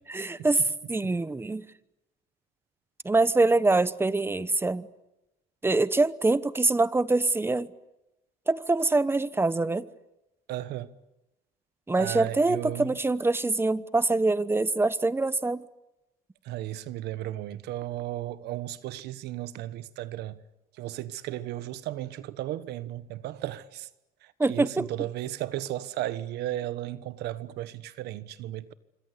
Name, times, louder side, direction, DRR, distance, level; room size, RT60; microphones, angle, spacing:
voice 1, 0.1-0.6 0.9-1.7 3.0-4.9 5.6-7.7 8.5-9.9 11.9-15.6 24.4-24.9, right 3 dB, 15° right, 1.0 m, -24 dB
voice 2, 10.5-10.9 12.0-13.0 16.4-20.4 20.7-23.9 24.2-28.7, right 14 dB, 80° right, 1.3 m, -35 dB
26.0 x 26.0 x 8.5 m
cardioid pair, 110°, 17 cm